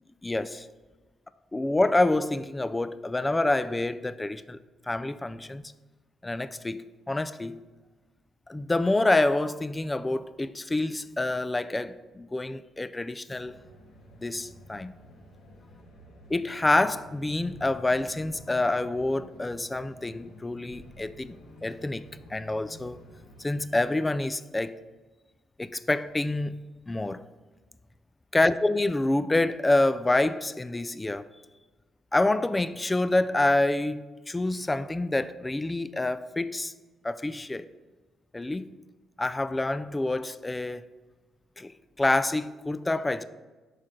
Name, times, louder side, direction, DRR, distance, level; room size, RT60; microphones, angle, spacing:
voice 1, 0.2-0.7 1.5-4.6 4.9-5.6 6.2-7.6 8.5-13.5 14.2-14.9 16.3-21.4 21.6-22.1 22.3-23.0 23.4-24.8 25.6-26.6 26.9-27.2 28.3-31.2 32.1-36.7 37.0-37.6 38.3-38.7 39.2-40.8 41.6-41.7 42.0-43.2, left 2 dB, 15° left, 0.3 m, -27 dB
sound 1, 13.3-23.6, left 1 dB, 70° left, 1.2 m, -51 dB
6.2 x 4.9 x 5.7 m
cardioid pair, 90°, 0 cm